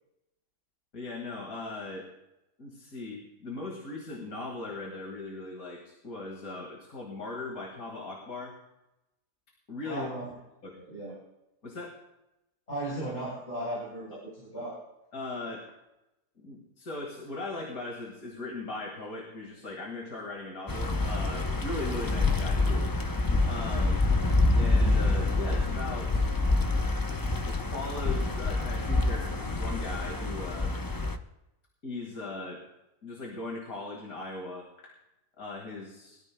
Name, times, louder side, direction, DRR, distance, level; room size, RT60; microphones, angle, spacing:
voice 1, 0.9-2.1 2.6-8.6 9.7-10.1 10.6-10.8 11.6-12.0 15.1-15.6 16.4-22.9 23.4-24.0 24.5-26.3 27.4-30.7 31.8-32.6 33.0-34.9 35.4-36.2, left 2 dB, 85° left, -1 dB, 2.5 m, -39 dB
voice 2, 9.8-10.3 10.8-11.2 12.7-14.8, right 1 dB, 50° left, -6 dB, 4.8 m, -36 dB
sound 1, 20.7-31.2, left 2 dB, 30° left, 0.4 m, -27 dB
22.5 x 14.0 x 2.3 m, 0.92 s
omnidirectional pair, 1.5 m